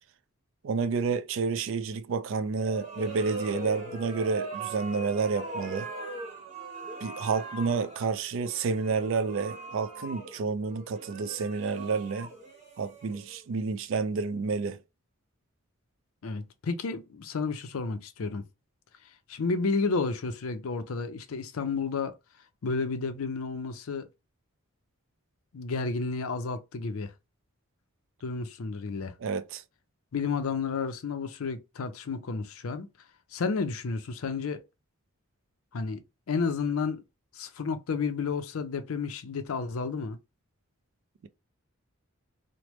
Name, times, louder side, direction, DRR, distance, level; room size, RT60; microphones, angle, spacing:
voice 1, 0.6-5.9 7.0-12.3 12.8-14.8 29.2-29.6, right 4 dB, 60° right, 0.3 m, -30 dB
sound 1, 2.5-13.5, right 3 dB, 30° right, 0.9 m, -40 dB
voice 2, 16.2-18.4 19.3-22.1 22.6-24.1 25.5-27.1 28.2-29.1 30.1-32.9 33.3-34.6 35.7-37.0 37.3-40.2, left 4 dB, 75° left, 0.5 m, -31 dB
3.1 x 2.0 x 3.0 m
head